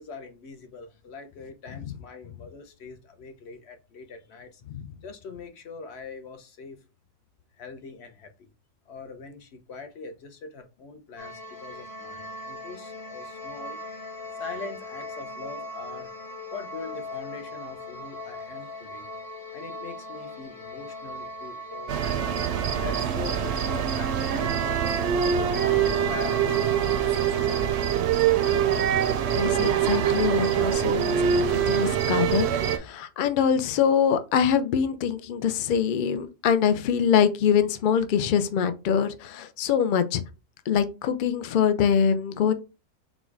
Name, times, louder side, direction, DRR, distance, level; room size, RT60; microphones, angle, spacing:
voice 1, 0.0-4.6 5.0-6.8 7.6-8.5 8.9-13.8 14.4-16.1 16.5-19.1 19.5-22.4 22.8-27.5 27.8-28.3, left 4 dB, 55° left, 1.0 m, -42 dB
sound 1, 11.2-27.7, equal, 25° left, 0.5 m, -39 dB
sound 2, 21.9-32.8, right 8 dB, 65° right, 0.7 m, -24 dB
voice 2, 29.3-40.2 40.7-42.5, left 7 dB, 80° left, 0.4 m, -24 dB
4.2 x 2.3 x 4.5 m
omnidirectional pair, 1.4 m